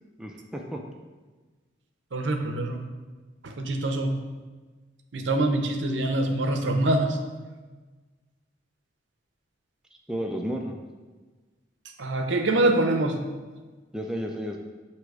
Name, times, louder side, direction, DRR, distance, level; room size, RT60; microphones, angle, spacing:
voice 1, 0.2-0.8 10.1-10.8 13.9-14.6, equal, 5° right, 1 dB, 0.4 m, -32 dB
voice 2, 2.1-2.8 3.4-4.1 5.1-7.2 12.0-13.2, right 2 dB, 80° right, 4 dB, 0.7 m, -24 dB
7.7 x 2.9 x 4.7 m, 1.3 s
head